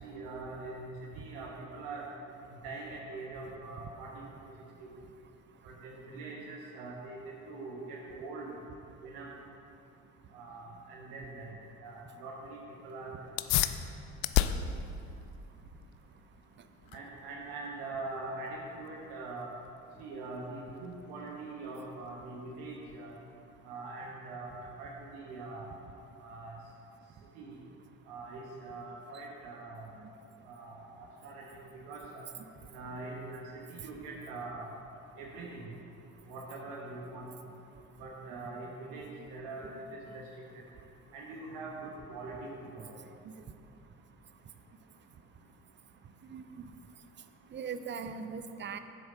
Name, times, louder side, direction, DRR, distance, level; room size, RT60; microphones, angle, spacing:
voice 1, 0.0-2.0 2.5-4.2 4.8-4.9 5.6-8.5 9.0-9.3 10.3-11.6 11.8-13.3 16.9-19.5 20.0-23.1 23.6-25.7 26.2-26.6 27.3-27.6 28.1-29.9 30.4-31.5 31.7-32.3 32.7-34.7 35.2-35.6 36.2-37.3 38.0-40.2 41.1-43.0, right 3 dB, 65° right, -1 dB, 1.3 m, -43 dB
sound 1, 13.3-23.3, left 12 dB, 55° left, 0.5 m, -36 dB
voice 2, 38.9-39.3 39.6-39.8 43.2-43.3 46.2-46.7 47.5-48.8, right 6 dB, 25° right, 10 dB, 0.6 m, -41 dB
9.9 x 7.8 x 3.9 m, 2.6 s
hypercardioid pair, 60°, 42 cm